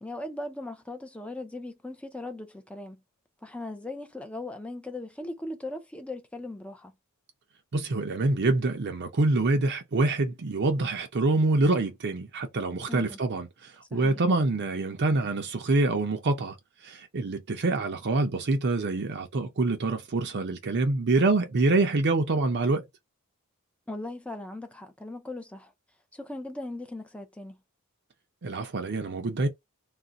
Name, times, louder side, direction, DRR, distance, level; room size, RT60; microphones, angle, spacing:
voice 1, 0.0-3.0 3.4-6.9 12.9-13.2 13.9-14.2 23.9-25.7 26.1-27.6, left 2 dB, 5° left, 0.5 m, -38 dB
voice 2, 7.7-16.6 16.8-22.8 28.4-29.5, right 2 dB, 50° right, 0.6 m, -26 dB
2.4 x 2.1 x 3.9 m
head